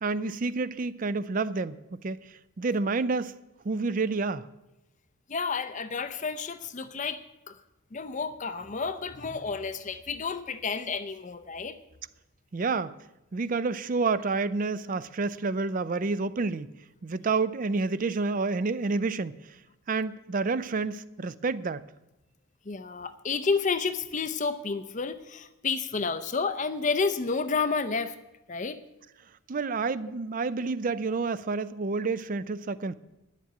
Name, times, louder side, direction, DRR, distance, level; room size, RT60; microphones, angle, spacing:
voice 1, 0.0-3.4 3.6-4.5 12.5-12.9 13.3-16.7 17.0-19.4 19.9-21.9 29.5-32.9, right 4 dB, 40° right, 0.4 m, -29 dB
voice 2, 5.3-7.2 7.5-7.6 7.9-11.8 22.7-28.1 28.5-28.8, left 4 dB, 35° left, 0.5 m, -30 dB
10.0 x 7.4 x 9.3 m
head